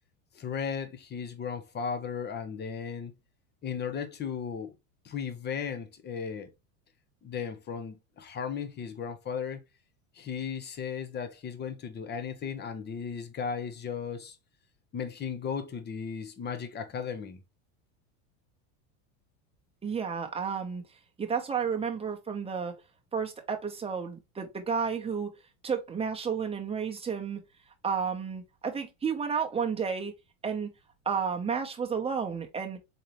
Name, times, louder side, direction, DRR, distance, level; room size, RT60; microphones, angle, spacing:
voice 1, 0.3-3.1 3.6-4.8 5.0-6.5 7.2-9.6 10.1-14.4 14.9-17.4, left 6 dB, 25° left, 0.8 m, -36 dB
voice 2, 19.8-20.8 21.2-22.7 23.1-25.3 25.6-27.4 27.8-30.1 30.4-30.7 31.1-32.8, right 6 dB, 15° right, 0.9 m, -31 dB
4.2 x 3.8 x 3.1 m
supercardioid pair, 115°, 40 cm